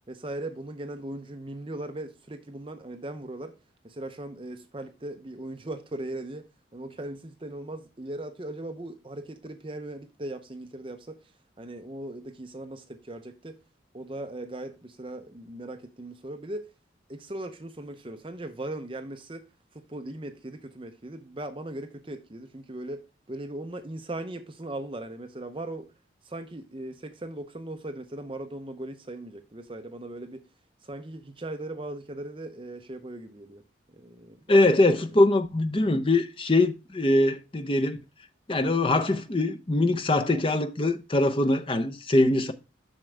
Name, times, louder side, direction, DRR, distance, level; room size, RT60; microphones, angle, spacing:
voice 1, 0.1-3.6 3.8-11.2 11.6-13.6 13.9-16.7 17.1-19.4 19.7-23.0 23.3-25.9 26.2-30.5 30.8-33.6 33.9-34.8, right 1 dB, 30° right, 0.7 m, -38 dB
voice 2, 34.5-38.0 38.5-42.5, left 2 dB, 30° left, 0.6 m, -22 dB
7.3 x 6.2 x 3.3 m
head